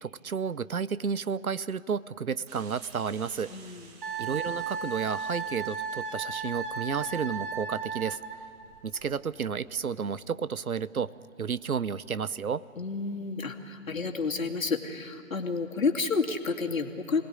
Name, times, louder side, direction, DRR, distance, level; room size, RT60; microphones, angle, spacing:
voice 1, 0.0-3.5 4.2-8.2 8.8-11.1 11.4-12.6, right 6 dB, 80° right, 18 dB, 0.8 m, -32 dB
sound 1, 2.5-9.8, right 4 dB, 15° right, 1.4 m, -56 dB
voice 2, 3.5-4.0 12.8-17.2, left 4 dB, 65° left, 3 dB, 2.5 m, -30 dB
Wind instrument woodwind instrument, 4.0-8.5, right 5 dB, 35° right, 1.6 m, -35 dB
27.0 x 19.0 x 9.8 m, 2.4 s
figure-of-eight pair, 145°, 43 cm